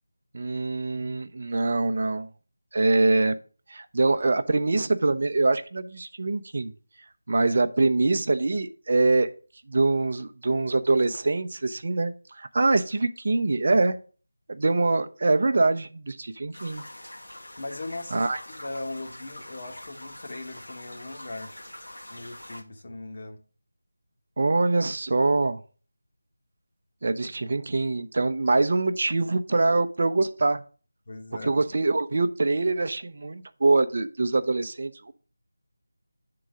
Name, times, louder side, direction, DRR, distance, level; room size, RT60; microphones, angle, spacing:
voice 1, 0.3-2.3 2.7-3.3 3.7-6.7 7.3-9.3 9.7-14.0 14.5-16.8 18.1-18.4 24.4-25.6 27.0-30.6 31.4-35.1, right 3 dB, 45° right, 10 dB, 0.6 m, -24 dB
sound 1, 16.5-22.6, left 1 dB, 75° left, 1.6 m, -44 dB
voice 2, 17.6-21.5 22.1-23.4 31.1-31.5, left 2 dB, 45° left, 3 dB, 1.2 m, -39 dB
8.0 x 3.8 x 5.0 m, 0.37 s
figure-of-eight pair, 165°, 0 cm